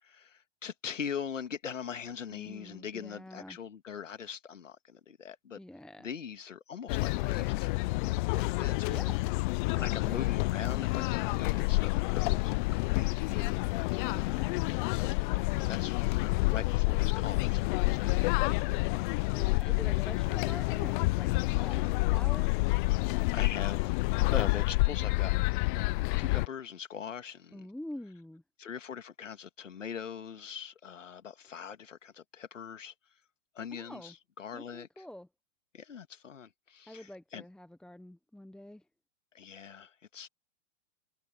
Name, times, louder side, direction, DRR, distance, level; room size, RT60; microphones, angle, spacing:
voice 1, 0.0-5.6 6.0-7.7 8.0-8.9 9.7-14.0 15.0-18.8 21.7-22.0 23.3-24.0 24.3-27.7 28.6-32.9 33.5-35.0 35.7-37.4 39.3-40.3, left 7 dB, 90° left, 2.3 m, -42 dB
voice 2, 2.3-3.6 5.6-6.1 8.9-9.2 9.8-10.2 11.6-11.7 14.1-14.5 19.3-21.3 21.6-22.6 27.5-28.4 33.7-34.1 34.5-35.3 36.9-38.8, left 1 dB, ahead, 1.1 m, -46 dB
sound 1, 6.9-26.5, left 23 dB, 45° left, 0.6 m, -29 dB
open air
hypercardioid pair, 115°, 37 cm